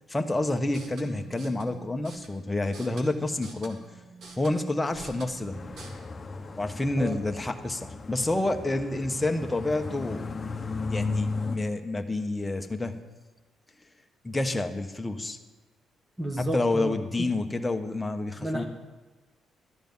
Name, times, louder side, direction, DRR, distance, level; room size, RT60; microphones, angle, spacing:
voice 1, 0.1-3.8 4.4-5.6 6.6-10.3 10.9-13.0 14.2-15.4 16.4-18.6, left 2 dB, 15° left, 5 dB, 1.1 m, -29 dB
sound 1, 0.6-5.9, right 3 dB, 65° right, 2.0 m, -48 dB
sound 2, 5.5-11.6, left 4 dB, 30° left, 1.1 m, -35 dB
voice 2, 16.2-17.3 18.4-18.6, right 1 dB, 15° right, 2 dB, 1.4 m, -32 dB
13.0 x 10.0 x 5.5 m, 1.2 s
cardioid pair, 90°, 0 cm